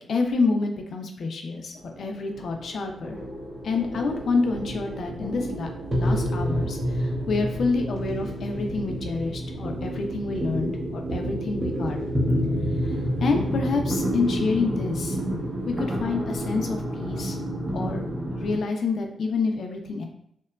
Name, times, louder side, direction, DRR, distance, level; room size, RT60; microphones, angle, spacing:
voice 1, 0.1-3.2 3.6-12.0 13.2-15.2 15.6-17.4 17.7-18.1 18.4-20.1, left 4 dB, 65° left, 3 dB, 0.4 m, -28 dB
sound 1, 1.8-18.6, equal, 30° right, 0.6 m, -29 dB
2.8 x 2.2 x 2.2 m, 0.72 s
cardioid pair, 80°, 0 cm